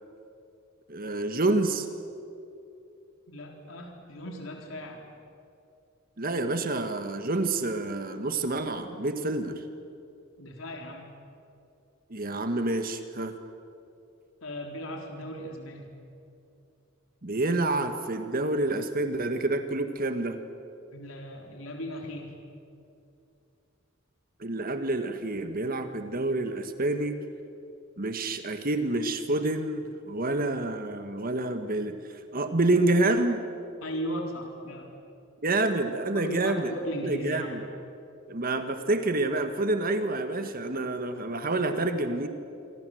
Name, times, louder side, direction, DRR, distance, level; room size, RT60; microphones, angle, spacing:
voice 1, 0.9-1.9 6.2-9.6 12.1-13.3 17.2-20.4 24.4-27.2 28.0-33.4 35.4-36.7 37.0-37.6 38.3-42.3, right 2 dB, 45° right, 8 dB, 1.6 m, -28 dB
voice 2, 3.3-5.0 10.4-11.1 14.4-15.9 20.9-22.3 33.8-34.9 36.1-37.6, equal, 80° left, 2 dB, 3.9 m, -37 dB
27.5 x 25.5 x 7.9 m, 2.7 s
head